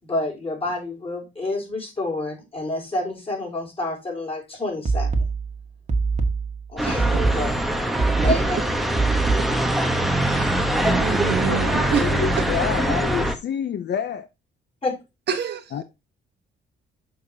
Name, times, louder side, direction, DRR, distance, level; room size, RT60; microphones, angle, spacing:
voice 1, 0.0-5.2 6.7-7.5 8.2-8.6 14.8-15.0, left 2 dB, 30° left, 4.9 m, -28 dB
sound 1, 4.9-9.8, right 4 dB, 35° right, 1.6 m, -24 dB
sound 2, 6.8-13.3, right 1 dB, ahead, 1.2 m, -23 dB
voice 2, 10.2-10.7 10.9-12.1 12.4-12.5 15.3-15.7, right 8 dB, 60° right, 1.4 m, -27 dB
voice 3, 11.4-14.3 15.7-15.8, left 8 dB, 60° left, 0.8 m, -28 dB
6.6 x 5.2 x 4.0 m
cardioid pair, 90°, 20 cm